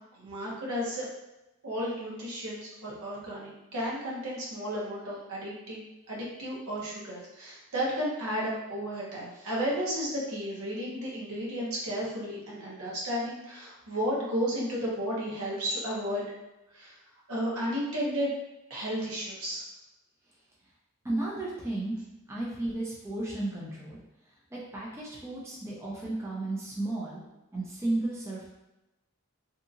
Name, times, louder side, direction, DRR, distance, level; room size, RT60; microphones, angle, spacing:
voice 1, 0.2-1.1 1.6-5.8 6.1-16.3 16.7-16.9 17.3-18.4 18.7-19.6, equal, 80° right, -5 dB, 0.9 m, -33 dB
voice 2, 21.0-22.0 22.3-24.0 24.5-27.2 27.5-28.5, right 2 dB, 10° right, -5 dB, 0.4 m, -33 dB
2.7 x 2.5 x 2.5 m, 0.97 s
head